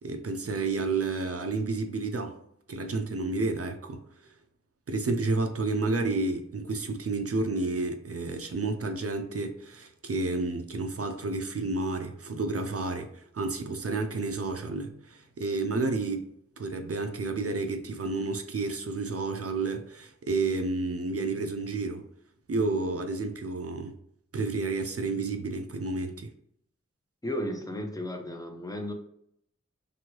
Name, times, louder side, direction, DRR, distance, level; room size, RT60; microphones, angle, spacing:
voice 1, 0.0-2.4 2.7-4.0 4.9-16.3 16.6-22.0 22.5-23.9 24.3-26.3, right 3 dB, 55° right, 0.4 m, -30 dB
voice 2, 27.2-28.9, left 1 dB, 15° left, 0.6 m, -34 dB
2.9 x 2.7 x 2.9 m
wide cardioid pair, 45°, 29 cm